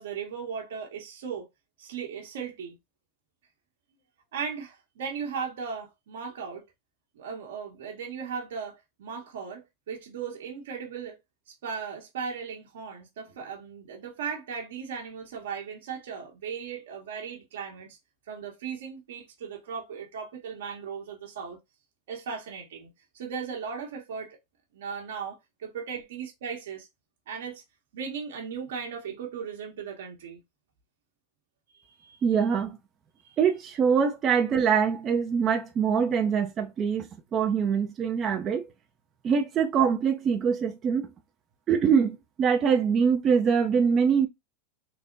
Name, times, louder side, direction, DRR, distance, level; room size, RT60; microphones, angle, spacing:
voice 1, 0.0-1.5 1.8-2.8 4.3-6.6 7.1-11.2 11.6-18.0 18.3-21.6 22.1-24.4 24.7-26.9 27.3-27.6 27.9-30.4 31.7-32.2 33.2-33.4, right 6 dB, 80° right, 1.0 m, -37 dB
voice 2, 32.2-32.8 33.4-38.7 39.2-41.1 41.7-44.3, right 6 dB, 30° right, 0.5 m, -24 dB
3.4 x 2.1 x 3.8 m
supercardioid pair, 125°, 0 cm